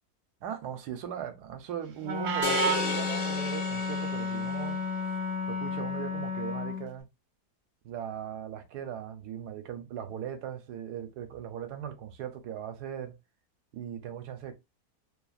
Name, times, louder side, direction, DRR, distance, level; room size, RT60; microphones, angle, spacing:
voice 1, 0.4-4.8 5.5-7.1 7.8-13.2 13.7-14.5, right 9 dB, 75° right, 1.2 m, -39 dB
Wind instrument woodwind instrument, 2.0-6.9, left 1 dB, 55° right, 1.0 m, -31 dB
sound 1, 2.4-4.8, left 6 dB, 70° left, 1.2 m, -34 dB
3.0 x 2.3 x 2.3 m
omnidirectional pair, 1.7 m